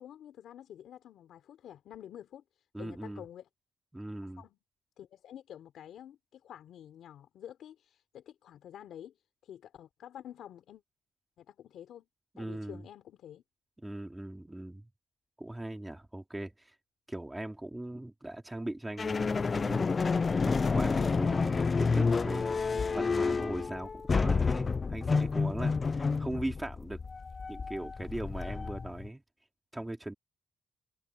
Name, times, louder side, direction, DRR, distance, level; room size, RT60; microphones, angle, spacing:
voice 1, 0.0-2.4 2.8-3.5 4.2-4.6 5.0-9.2 9.4-10.8 11.4-12.1 12.4-13.4, left 10 dB, 70° left, 3.7 m, -49 dB
voice 2, 2.7-3.2 3.9-4.4 12.3-12.8 13.8-14.9 15.4-16.7 17.1-19.9 20.4-22.6 22.9-27.0 27.5-29.2 29.7-30.1, right 1 dB, 10° right, 3.1 m, -39 dB
sound 1, 19.0-29.1, left 4 dB, 30° left, 0.4 m, -29 dB
cardioid pair, 135°, 0 cm